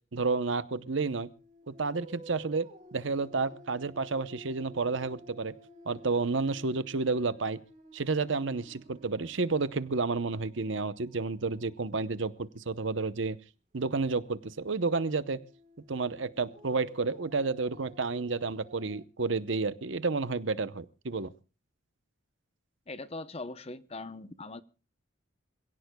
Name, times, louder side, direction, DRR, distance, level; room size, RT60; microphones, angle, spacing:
voice 1, 0.1-1.3 1.7-5.5 5.9-7.6 7.9-13.4 13.7-15.4 15.9-21.3, right 4 dB, 65° right, 0.8 m, -31 dB
sound 1, 1.2-12.5 13.7-19.0, equal, 35° right, 2.7 m, -54 dB
voice 2, 22.9-24.6, left 2 dB, 30° left, 0.7 m, -41 dB
26.5 x 17.0 x 2.3 m
head